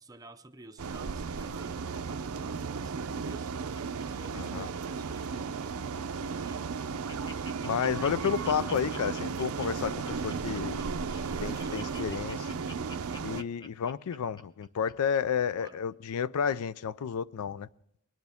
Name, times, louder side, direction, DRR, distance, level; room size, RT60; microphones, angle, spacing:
voice 1, 0.0-3.5 4.0-5.3 11.1-12.2 15.3-15.8, right 2 dB, 15° right, 0.6 m, -52 dB
sound 1, 0.8-13.4, right 5 dB, 80° right, 0.5 m, -35 dB
Laughter, 3.1-4.9 5.2-5.5 6.0-6.1 6.4-6.5 6.8-15.2 15.7-15.8, left 2 dB, 20° left, 0.7 m, -48 dB
voice 2, 4.3-4.7 7.6-10.8 11.4-12.5 13.2-17.7, left 7 dB, 85° left, 0.4 m, -31 dB
21.0 x 10.5 x 3.5 m
head